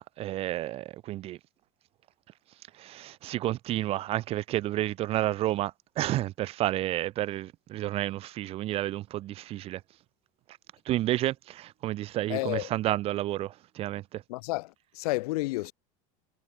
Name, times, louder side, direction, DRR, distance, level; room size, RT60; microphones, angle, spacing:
voice 1, 0.0-1.4 2.8-9.8 10.9-14.2, right 15 dB, 30° right, 0.4 m, -31 dB
voice 2, 12.3-12.7 14.3-15.7, left 21 dB, 85° left, 0.9 m, -31 dB
supercardioid pair, 150°, 19 cm